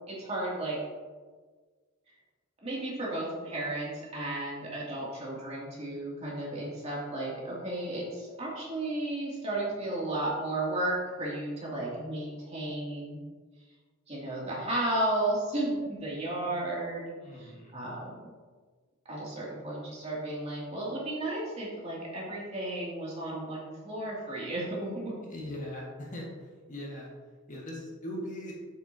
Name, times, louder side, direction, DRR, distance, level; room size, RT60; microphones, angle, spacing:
voice 1, 0.1-0.8 2.6-13.2 14.1-17.0 17.4-18.3 19.1-25.1, right 1 dB, 30° right, -5 dB, 2.4 m, -33 dB
voice 2, 17.2-17.7 25.3-27.1 27.5-28.6, left 1 dB, 40° left, -3 dB, 1.6 m, -40 dB
8.3 x 7.9 x 2.7 m, 1.5 s
head